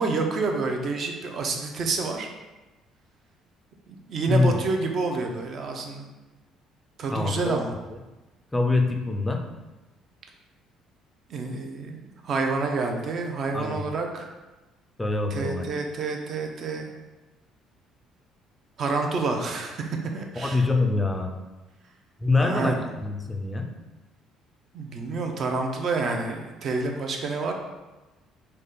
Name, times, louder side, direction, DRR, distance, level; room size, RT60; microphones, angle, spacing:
voice 1, 0.0-2.3 3.9-6.1 7.0-7.7 11.3-14.3 15.3-16.9 18.8-20.6 22.4-22.8 24.7-27.5, right 3 dB, 40° right, 3 dB, 0.6 m, -28 dB
voice 2, 4.3-4.6 7.1-7.5 8.5-9.4 13.5-13.8 15.0-15.6 20.4-21.3 22.2-23.7, left 3 dB, 10° left, 3 dB, 0.4 m, -24 dB
4.1 x 3.3 x 3.7 m, 1.1 s
cardioid pair, 160°, 0 cm